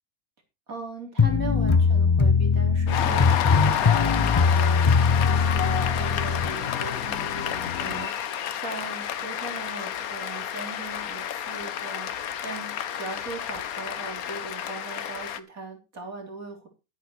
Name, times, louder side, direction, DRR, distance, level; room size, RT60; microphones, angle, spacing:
voice 1, 0.7-8.1 8.5-16.7, right 3 dB, 70° right, 3 dB, 4.0 m, -39 dB
sound 1, 1.2-6.5, left 5 dB, 25° left, 0.8 m, -21 dB
Cheering / Applause, 2.9-15.4, left 9 dB, 75° left, 1.3 m, -30 dB
sound 2, 2.9-8.1, left 9 dB, 55° left, 1.0 m, -34 dB
12.0 x 9.9 x 4.4 m, 0.28 s
omnidirectional pair, 1.5 m